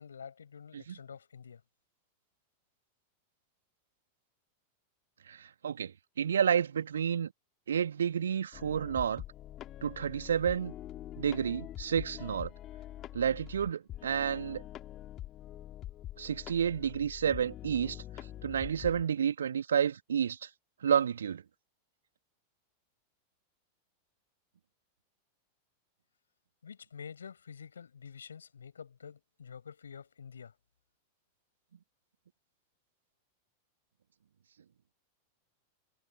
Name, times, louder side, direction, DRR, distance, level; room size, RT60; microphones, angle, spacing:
voice 1, 0.0-1.6 26.6-30.6, left 7 dB, 70° left, 7.1 m, -48 dB
voice 2, 5.3-5.9 6.2-7.3 7.7-9.2 9.8-10.7 11.2-12.5 13.1-14.6 16.2-18.0 18.4-20.5 20.8-21.4, right 8 dB, 65° right, 2.7 m, -30 dB
sound 1, 8.5-19.0, left 13 dB, 30° left, 3.1 m, -45 dB
figure-of-eight pair, 90°, 0 cm